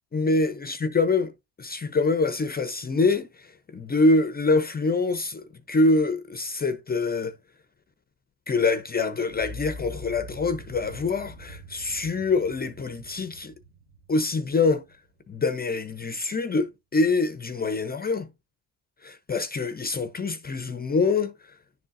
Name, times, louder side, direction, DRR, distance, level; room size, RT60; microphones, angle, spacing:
voice 1, 0.1-1.3 1.6-7.4 8.5-13.5 14.1-14.8 15.3-18.3 19.0-21.3, left 3 dB, 25° left, 0.6 m, -25 dB
sound 1, 9.3-15.4, left 1 dB, 40° right, 1.8 m, -44 dB
10.5 x 3.8 x 2.5 m
cardioid pair, 95°, 38 cm